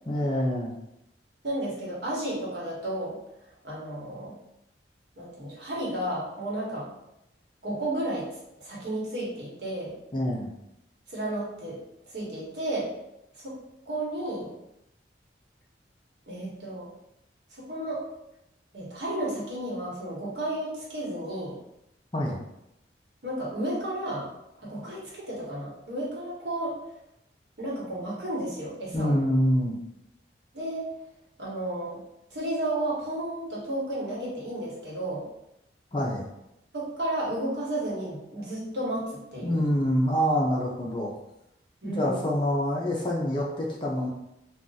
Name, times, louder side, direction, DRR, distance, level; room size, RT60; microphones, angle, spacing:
voice 1, 0.1-0.8 10.1-10.5 22.1-22.4 28.9-29.8 35.9-36.3 39.4-41.1 41.8-44.1, equal, 25° left, -2 dB, 0.5 m, -26 dB
voice 2, 1.4-3.2 3.6-4.3 5.2-6.9 7.6-8.3 8.6-10.0 11.1-11.8 12.1-12.9 13.3-13.5 13.9-14.5 16.3-16.9 17.5-18.0 18.7-21.6 23.2-24.3 24.6-26.7 27.6-29.2 30.5-30.9 31.4-32.0 32.3-35.3 36.7-39.6 41.8-42.3, right 1 dB, 60° right, -5 dB, 1.2 m, -32 dB
2.5 x 2.3 x 3.9 m, 0.84 s
head